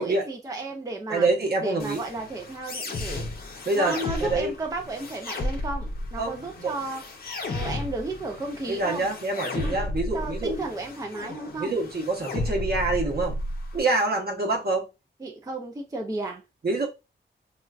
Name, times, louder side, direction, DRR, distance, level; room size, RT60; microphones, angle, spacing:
voice 1, 0.0-1.3 1.6-3.3 3.7-9.1 9.6-11.7 15.2-16.4, right 2 dB, 20° right, 0.4 m, -34 dB
voice 2, 1.1-2.0 3.7-4.5 6.2-6.7 8.7-10.6 11.6-13.4 13.7-14.9 16.6-16.9, right 2 dB, 55° right, 0.9 m, -26 dB
sound 1, 1.8-13.8, left 2 dB, 50° left, 0.6 m, -34 dB
4.2 x 2.3 x 2.3 m
wide cardioid pair, 160°, 19 cm